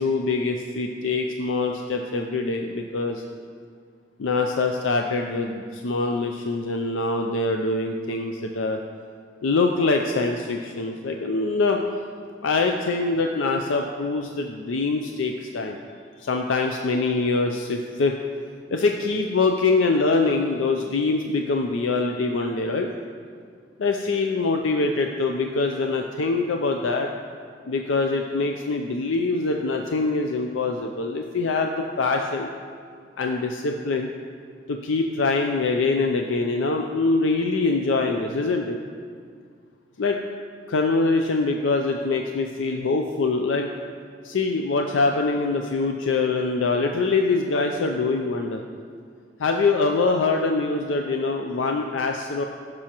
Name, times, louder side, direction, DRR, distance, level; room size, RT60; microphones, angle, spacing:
voice 1, 0.0-3.2 4.2-8.8 9.4-11.8 12.4-15.8 16.2-18.1 18.7-22.9 23.8-27.1 27.7-32.5 33.2-34.1 34.7-38.8 40.0-40.2 40.7-43.7 44.2-48.6 49.4-52.4, left 3 dB, 85° left, 3 dB, 0.5 m, -24 dB
15.0 x 6.2 x 2.9 m, 2.1 s
head